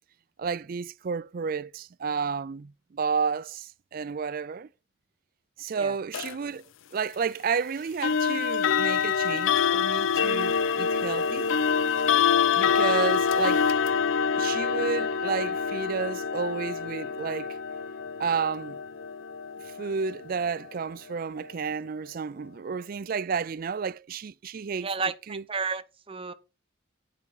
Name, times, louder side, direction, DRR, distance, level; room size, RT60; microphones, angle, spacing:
voice 1, 0.4-4.7 5.6-6.6 6.9-11.5 12.6-13.7 14.4-17.6 18.2-18.8 19.6-24.9 25.3-25.4, right 5 dB, 45° right, 0.4 m, -31 dB
sound 1, 6.1-6.3 8.0-20.9, left 6 dB, 70° left, 0.5 m, -26 dB
voice 2, 24.8-26.3, right 4 dB, 25° right, 0.8 m, -32 dB
11.0 x 5.0 x 4.7 m
head